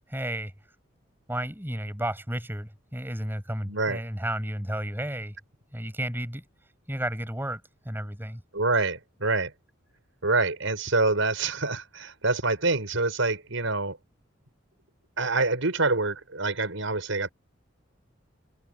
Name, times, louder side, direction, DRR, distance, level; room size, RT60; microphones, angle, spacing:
voice 1, 0.1-0.5 1.3-5.4 5.7-6.4 6.9-8.4, right 1 dB, 10° right, 7.6 m, -32 dB
voice 2, 3.7-4.0 8.5-9.5 10.2-14.0 15.2-17.3, right 3 dB, 75° right, 5.1 m, -26 dB
head